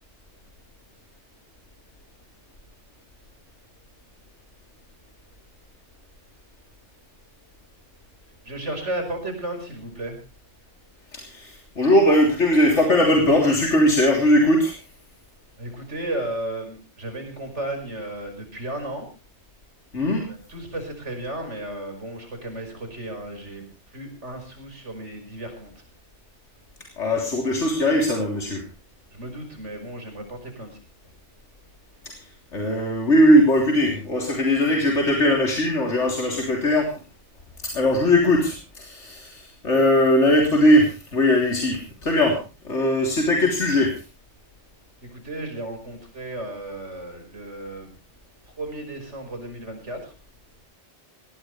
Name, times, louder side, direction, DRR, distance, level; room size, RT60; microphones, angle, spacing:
voice 1, 8.4-10.2 15.6-19.1 20.2-25.7 29.1-30.8 45.0-47.9 48.6-50.1, right 1 dB, 85° right, 5 dB, 5.7 m, -34 dB
voice 2, 11.1-14.8 19.9-20.3 27.0-28.6 32.1-36.9 37.6-44.0, left 1 dB, 85° left, 1 dB, 3.8 m, -20 dB
19.0 x 18.0 x 3.3 m, 0.32 s
omnidirectional pair, 1.2 m